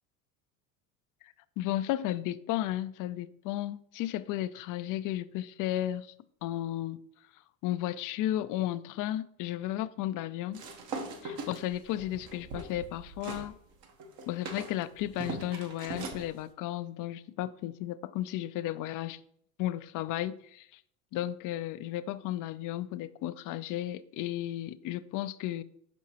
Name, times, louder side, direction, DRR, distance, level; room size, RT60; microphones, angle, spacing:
voice 1, 1.2-6.1 6.4-7.0 7.6-10.6 11.2-13.5 14.3-19.2 19.6-20.7 21.1-25.6, left 13 dB, 50° left, 0.4 m, -34 dB
sound 1, 10.5-13.5 13.8-16.3, right 3 dB, 55° right, 1.1 m, -40 dB
6.1 x 5.4 x 2.9 m
hypercardioid pair, 75°, 43 cm